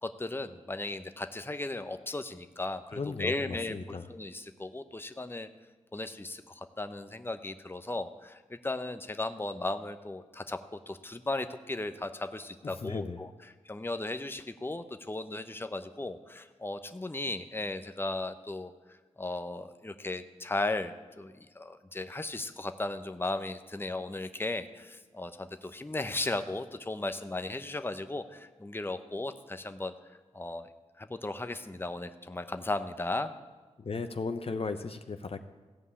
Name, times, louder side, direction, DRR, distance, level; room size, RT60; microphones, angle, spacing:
voice 1, 0.0-5.5 5.9-13.3 13.6-18.7 19.2-29.9 30.3-30.7 31.0-33.3, left 2 dB, 20° left, 9 dB, 0.8 m, -36 dB
voice 2, 2.9-4.1 12.6-13.2 33.8-35.4, left 4 dB, 50° left, 8 dB, 0.8 m, -36 dB
15.0 x 5.5 x 8.3 m, 1.3 s
cardioid pair, 45°, 12 cm